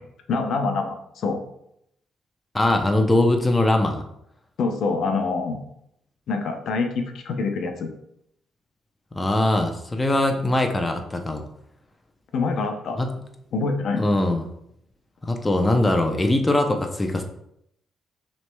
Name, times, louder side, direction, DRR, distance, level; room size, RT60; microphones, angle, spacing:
voice 1, 0.3-1.4 4.6-5.6 6.3-7.9 12.3-13.0 13.5-14.1, left 4 dB, 65° left, 5 dB, 0.6 m, -25 dB
voice 2, 2.5-4.0 9.1-11.5 13.0-13.1 14.0-14.4 15.2-17.2, left 1 dB, 15° left, 4 dB, 0.5 m, -21 dB
5.8 x 3.1 x 2.2 m, 0.75 s
cardioid pair, 90°, 0 cm